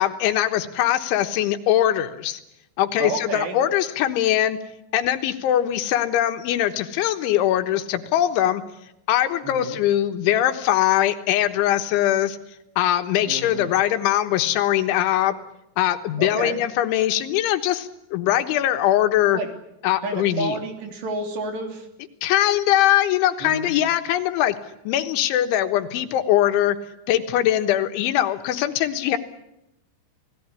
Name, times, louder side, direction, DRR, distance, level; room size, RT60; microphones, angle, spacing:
voice 1, 0.0-2.4 2.8-4.6 4.9-8.6 9.1-12.4 12.8-15.4 15.8-19.4 19.8-20.6 22.2-24.6 24.9-26.8 27.1-29.2, left 12 dB, 80° left, 8 dB, 3.6 m, -21 dB
voice 2, 3.0-3.6 9.4-9.8 13.3-13.7 16.2-16.6 19.3-19.5 20.0-21.9 23.4-23.7, right 3 dB, 65° right, 4 dB, 5.3 m, -30 dB
29.5 x 18.0 x 9.7 m, 0.88 s
omnidirectional pair, 5.5 m